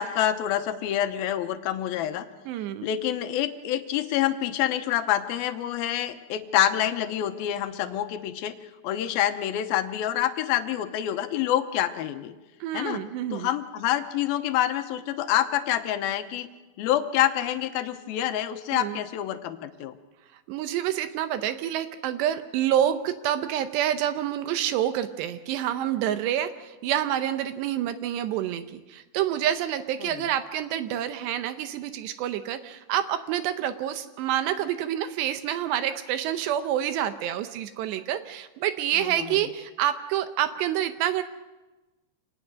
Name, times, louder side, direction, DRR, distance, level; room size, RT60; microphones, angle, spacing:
voice 1, 0.0-2.3 2.8-8.5 8.8-12.3 12.7-13.0 13.3-16.5 16.8-19.9 30.0-30.2 39.0-39.3, left 11 dB, 75° left, 9 dB, 2.4 m, -27 dB
voice 2, 2.5-2.9 12.6-13.5 18.7-19.0 20.5-41.2, right 11 dB, 80° right, 10 dB, 2.9 m, -28 dB
26.5 x 19.0 x 6.3 m, 1.2 s
omnidirectional pair, 5.0 m